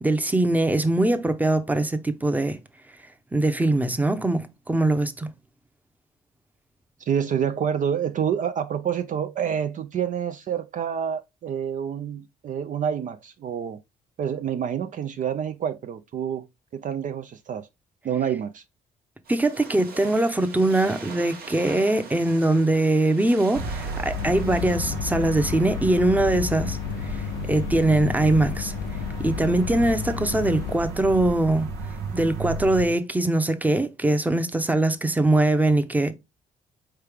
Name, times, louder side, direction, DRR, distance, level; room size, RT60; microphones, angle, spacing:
voice 1, 0.0-2.6 3.3-5.3 19.3-28.7 29.2-31.7 32.1-36.1, right 2 dB, 10° right, 0.7 m, -22 dB
voice 2, 7.0-13.8 14.2-16.5 16.7-17.7 18.0-18.6, right 8 dB, 50° right, 0.4 m, -28 dB
sound 1, 19.2-24.8, right 5 dB, 65° right, 1.3 m, -43 dB
sound 2, 23.5-32.9, right 2 dB, 85° right, 1.0 m, -33 dB
sound 3, 24.1-30.8, left 10 dB, 75° left, 0.4 m, -32 dB
4.5 x 3.3 x 3.4 m
supercardioid pair, 60°, 17 cm